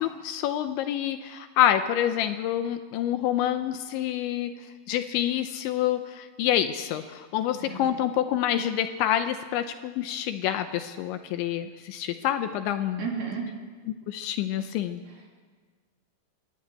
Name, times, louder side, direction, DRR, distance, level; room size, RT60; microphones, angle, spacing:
voice 1, 0.0-4.5 4.9-13.1 14.1-15.0, left 11 dB, 80° left, 9 dB, 2.9 m, -27 dB
voice 2, 13.0-13.4 15.1-15.3, right 6 dB, 55° right, 0 dB, 4.5 m, -33 dB
23.5 x 13.0 x 8.9 m, 1.5 s
omnidirectional pair, 5.7 m